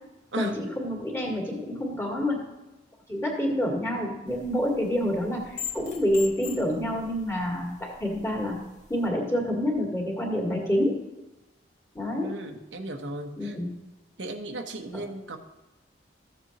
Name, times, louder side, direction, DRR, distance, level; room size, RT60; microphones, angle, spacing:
voice 1, 0.4-2.5 3.1-8.6 8.9-11.0 11.9-12.3 13.4-13.7 14.9-15.0, equal, 15° left, -2 dB, 2.0 m, -28 dB
sound 1, 4.3-9.1, left 7 dB, 40° left, 1.1 m, -43 dB
voice 2, 12.2-13.5 14.2-15.4, right 2 dB, 80° right, 4 dB, 1.0 m, -35 dB
14.0 x 7.5 x 3.0 m, 1.0 s
head